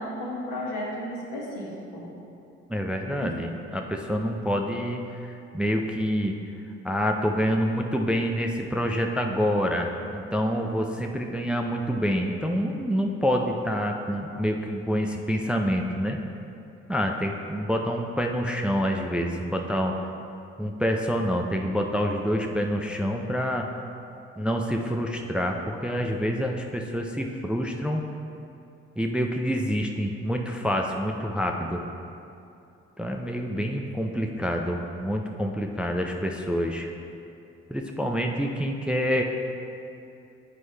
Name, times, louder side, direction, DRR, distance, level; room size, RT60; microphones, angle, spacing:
voice 1, 0.0-2.1, left 1 dB, 70° left, -4 dB, 1.4 m, -33 dB
voice 2, 2.7-6.4 6.8-16.2 16.9-20.0 20.6-23.7 24.4-28.0 29.0-31.8 33.0-36.9 37.7-39.2, equal, 5° right, 2 dB, 0.5 m, -27 dB
7.9 x 4.2 x 3.2 m, 2.7 s
hypercardioid pair, 45°, 33 cm